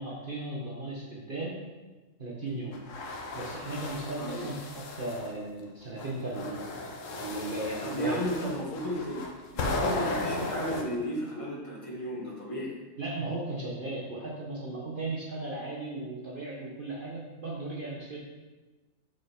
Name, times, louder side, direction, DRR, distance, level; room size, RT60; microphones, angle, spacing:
voice 1, 0.0-1.6 2.2-2.8 3.3-6.7 7.1-8.2 13.0-18.2, right 2 dB, 45° right, -4 dB, 1.1 m, -36 dB
sound 1, 2.7-5.3 6.0-10.8, left 2 dB, 70° left, 1.2 m, -35 dB
voice 2, 4.2-4.5 7.8-9.2 9.5-12.8, equal, 25° left, -4 dB, 1.6 m, -34 dB
6.6 x 6.5 x 3.5 m, 1.2 s
omnidirectional pair, 1.4 m